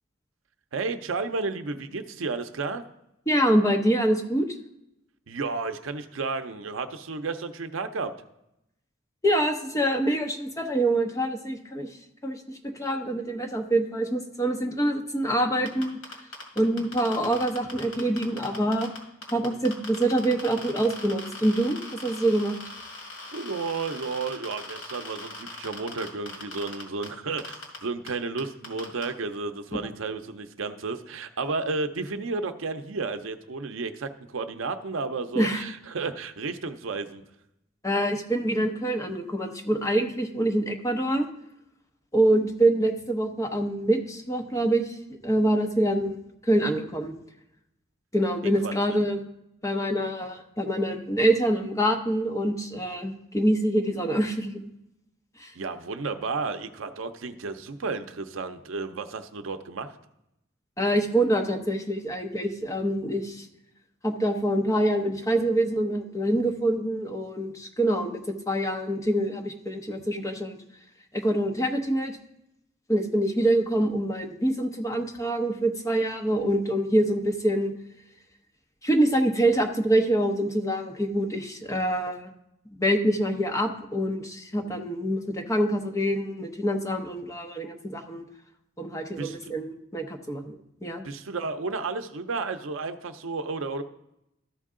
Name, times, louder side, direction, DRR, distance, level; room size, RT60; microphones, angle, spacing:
voice 1, 0.7-2.8 5.3-8.1 23.3-37.2 48.6-48.7 55.6-59.9 89.2-89.5 91.0-93.8, right 4 dB, 70° right, 9 dB, 0.6 m, -32 dB
voice 2, 3.3-4.5 9.2-11.9 12.2-16.0 16.6-18.9 19.3-22.6 35.4-35.6 37.8-41.3 42.1-47.1 48.1-49.2 49.6-54.5 55.4-55.5 60.8-63.5 64.0-70.6 71.1-72.2 72.9-77.7 78.8-82.3 82.8-88.2 88.8-91.0, right 1 dB, 15° left, 3 dB, 0.8 m, -25 dB
sound 1, 15.7-19.0 19.2-27.1 27.4-27.8 28.1-28.2 28.4-29.0, left 3 dB, 80° left, 2.1 m, -39 dB
13.5 x 4.5 x 3.7 m, 0.84 s
head